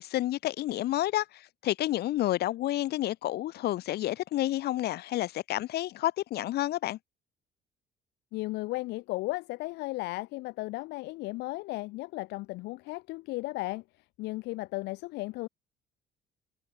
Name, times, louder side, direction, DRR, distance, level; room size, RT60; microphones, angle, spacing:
voice 1, 0.0-7.0, left 14 dB, 70° left, 3.6 m, -30 dB
voice 2, 8.3-15.5, left 21 dB, 90° left, 1.2 m, -35 dB
cardioid pair, 110°, 17 cm